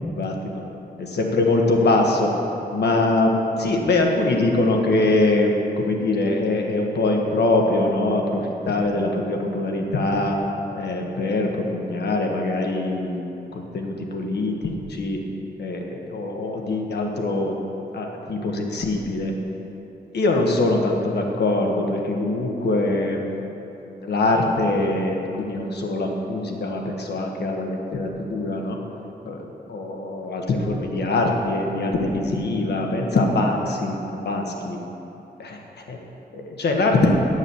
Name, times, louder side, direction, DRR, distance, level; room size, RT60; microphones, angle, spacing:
voice 1, 0.2-0.6 1.0-2.3 2.7-10.4 10.7-13.2 13.5-15.2 15.6-17.5 17.9-19.3 20.1-23.2 23.7-28.8 29.2-33.9 34.2-34.8 35.4-35.6 36.3-37.1, left 2 dB, 90° left, 1 dB, 1.4 m, -23 dB
10.5 x 7.2 x 7.0 m, 2.9 s
wide cardioid pair, 125°, 17 cm